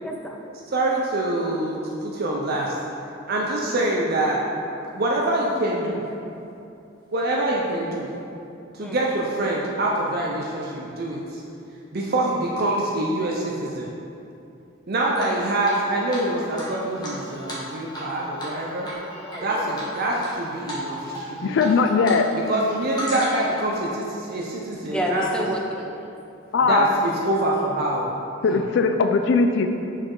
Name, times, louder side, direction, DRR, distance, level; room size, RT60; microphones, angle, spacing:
voice 1, 0.0-0.6 3.5-3.7 8.8-9.0 19.1-19.8 24.8-26.1, equal, 5° left, 0 dB, 0.5 m, -30 dB
voice 2, 0.7-2.7 3.3-4.4 4.9-6.0 7.1-8.1 8.7-11.4 11.9-13.9 14.9-18.9 19.4-21.6 22.5-25.2 26.6-28.1 28.5-28.6, right 1 dB, 50° right, -2 dB, 0.6 m, -25 dB
Drip, 15.2-15.8 16.1-16.2 16.6-18.1 18.4-18.6 18.8-19.4 19.8-20.3 20.7-20.8 21.1-22.2 22.5-23.6, equal, 20° left, 1.3 m, -33 dB
voice 3, 21.4-22.3 26.5-26.9 28.4-29.7, left 4 dB, 65° left, 6 dB, 0.3 m, -19 dB
6.5 x 4.8 x 3.8 m, 2.8 s
head